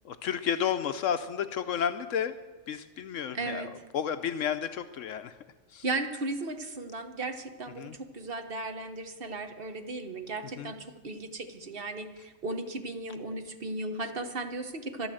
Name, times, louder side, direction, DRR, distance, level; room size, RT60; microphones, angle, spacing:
voice 1, 0.0-2.4 2.7-5.3 5.7-5.8 7.8-7.9 10.6-10.7, left 8 dB, 75° left, 10 dB, 1.0 m, -32 dB
voice 2, 3.3-3.7 5.8-15.1, right 2 dB, 45° right, 6 dB, 1.3 m, -36 dB
12.0 x 12.0 x 7.7 m, 1.3 s
omnidirectional pair, 1.4 m